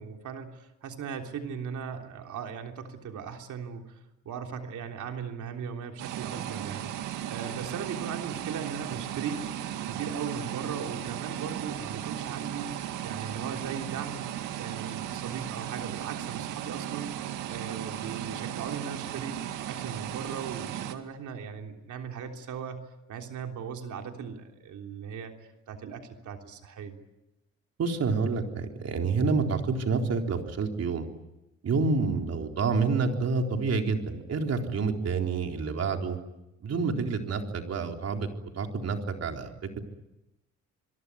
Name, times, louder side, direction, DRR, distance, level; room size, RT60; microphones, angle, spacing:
voice 1, 0.0-4.0 4.2-9.5 9.8-17.1 17.5-25.4 25.7-27.0, right 6 dB, 75° right, 3 dB, 3.5 m, -38 dB
sound 1, 6.0-20.9, right 11 dB, 90° right, 2.1 m, -36 dB
voice 2, 27.8-31.1 31.6-36.2 36.6-38.3 38.5-39.8, right 4 dB, 55° right, 3 dB, 3.9 m, -28 dB
26.0 x 22.5 x 9.7 m, 0.96 s
cardioid pair, 90°, 30 cm